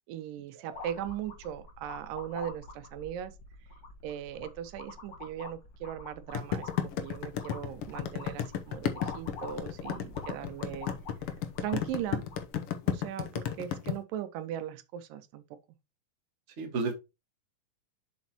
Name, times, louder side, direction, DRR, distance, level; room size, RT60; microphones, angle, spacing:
voice 1, 0.1-3.3 4.0-10.9 11.6-12.2 12.9-15.4, right 10 dB, 90° right, 2.5 m, -38 dB
sound 1, 0.7-12.5, left 3 dB, 45° left, 1.8 m, -46 dB
sound 2, 6.4-13.9, left 9 dB, 70° left, 1.4 m, -32 dB
voice 2, 16.6-16.9, right 3 dB, 40° right, 1.0 m, -34 dB
7.3 x 6.3 x 2.9 m
omnidirectional pair, 3.8 m